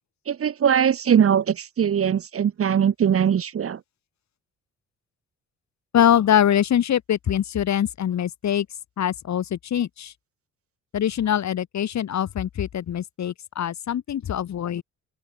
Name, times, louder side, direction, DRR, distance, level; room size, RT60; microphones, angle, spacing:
voice 1, 0.3-3.8, right 8 dB, 50° right, 1.6 m, -21 dB
voice 2, 5.9-8.7 9.0-10.1 10.9-14.8, left 10 dB, 65° left, 7.6 m, -23 dB
open air
cardioid pair, 90°, 30 cm